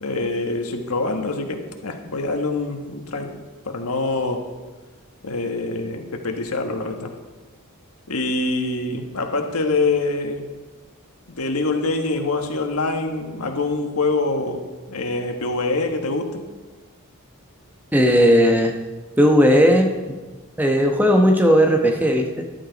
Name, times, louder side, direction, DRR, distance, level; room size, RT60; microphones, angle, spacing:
voice 1, 0.0-3.3 3.6-4.4 5.2-7.1 8.1-10.5 11.3-14.6 14.9-16.4, left 3 dB, 85° left, 4 dB, 1.5 m, -25 dB
voice 2, 17.9-18.8 19.2-19.9 20.6-22.4, equal, 10° right, 3 dB, 1.0 m, -16 dB
13.5 x 12.0 x 4.1 m, 1.3 s
head